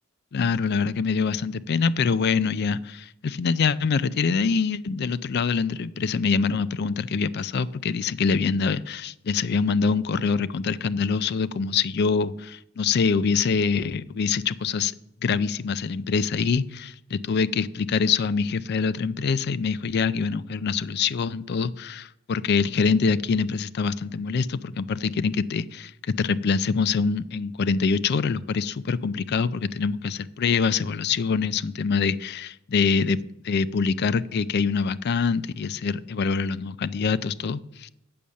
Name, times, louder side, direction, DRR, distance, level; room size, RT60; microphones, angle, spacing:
voice 1, 0.3-14.9 15.2-33.2 33.5-37.9, left 5 dB, 50° left, 17 dB, 0.4 m, -25 dB
8.6 x 7.0 x 6.3 m, 0.82 s
head